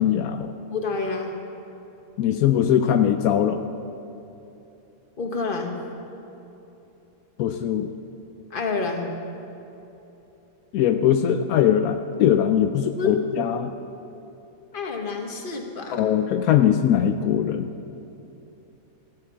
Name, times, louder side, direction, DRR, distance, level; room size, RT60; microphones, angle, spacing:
voice 1, 0.0-0.5 2.2-3.6 7.4-7.9 10.7-13.7 15.9-17.7, left 9 dB, 80° left, 8 dB, 1.0 m, -21 dB
voice 2, 0.7-1.3 5.2-5.8 8.5-9.1 13.0-13.2 14.7-16.0, left 4 dB, 40° left, 2 dB, 1.4 m, -28 dB
14.0 x 13.0 x 5.6 m, 3.0 s
omnidirectional pair, 1.5 m